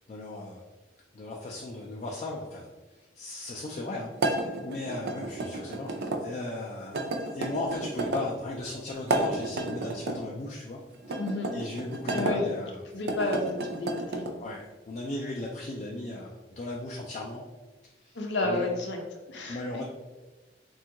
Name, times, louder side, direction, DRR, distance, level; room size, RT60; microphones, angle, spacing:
voice 1, 0.1-0.6 1.1-10.8 11.1-11.2 11.5-12.8 14.4-17.4 18.0-18.7 19.5-19.8, left 2 dB, 40° left, -1 dB, 0.3 m, -37 dB
sound 1, 4.2-6.2 6.9-8.3 9.0-10.2 11.0-12.4 13.0-14.3, right 2 dB, 60° right, 0.4 m, -31 dB
voice 2, 11.2-11.5 12.1-12.5 12.9-14.3 18.1-19.0 19.3-19.6, left 2 dB, 85° left, 2 dB, 0.6 m, -31 dB
3.4 x 2.3 x 2.8 m, 1.2 s
head